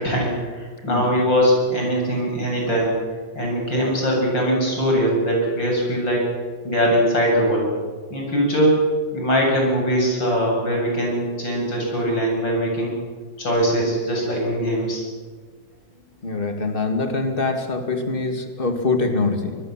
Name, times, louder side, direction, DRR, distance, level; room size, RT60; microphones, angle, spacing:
voice 1, 0.0-3.0 3.3-6.3 6.6-7.7 8.1-8.8 9.1-12.9 13.4-15.0, equal, 70° left, -1 dB, 8.3 m, -21 dB
voice 2, 16.2-19.6, left 3 dB, 25° left, 5 dB, 2.6 m, -24 dB
24.5 x 21.0 x 7.6 m, 1.5 s
omnidirectional pair, 2.1 m